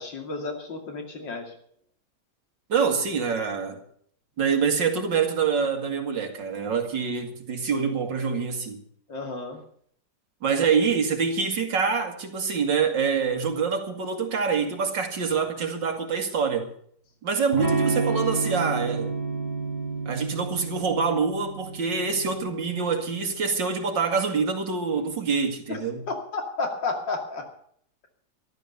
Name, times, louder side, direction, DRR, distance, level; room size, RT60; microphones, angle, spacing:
voice 1, 0.0-1.5 9.1-9.6 25.7-25.8 26.1-27.5, left 3 dB, 85° left, 3.2 m, -32 dB
voice 2, 2.7-3.8 4.4-8.8 10.4-16.7 17.2-19.1 20.1-26.0, right 5 dB, 80° right, 2.7 m, -25 dB
Electric guitar / Strum, 17.5-23.2, right 3 dB, 25° right, 4.0 m, -30 dB
13.5 x 12.0 x 6.9 m
omnidirectional pair, 1.9 m